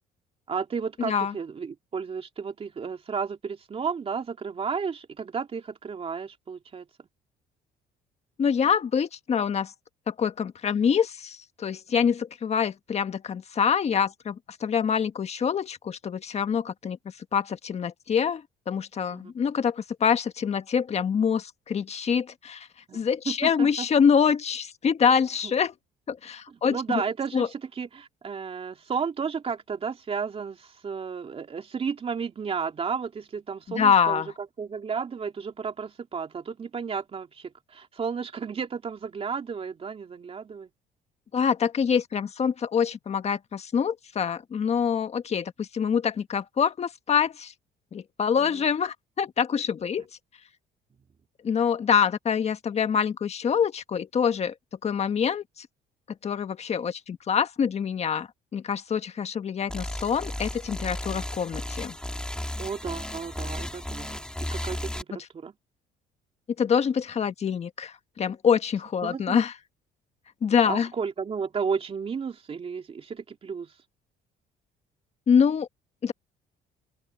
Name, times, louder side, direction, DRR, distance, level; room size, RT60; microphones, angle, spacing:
voice 1, 0.5-6.9 19.1-19.3 22.9-23.9 25.4-25.5 26.5-34.2 34.6-40.7 48.4-48.7 62.6-65.5 69.0-69.4 70.7-73.7, right 6 dB, 35° right, 3.0 m, -33 dB
voice 2, 1.0-1.3 8.4-9.7 10.1-17.0 17.3-22.7 22.9-25.7 26.1-27.0 27.3-27.5 33.7-34.3 41.3-47.5 47.9-50.0 51.4-54.5 54.8-55.7 56.2-62.0 66.6-69.5 70.4-70.9 75.3-75.7 76.0-76.1, left 7 dB, 40° left, 1.6 m, -25 dB
sound 1, 59.7-65.0, left 1 dB, 5° left, 2.2 m, -34 dB
open air
cardioid pair, 110°, 17 cm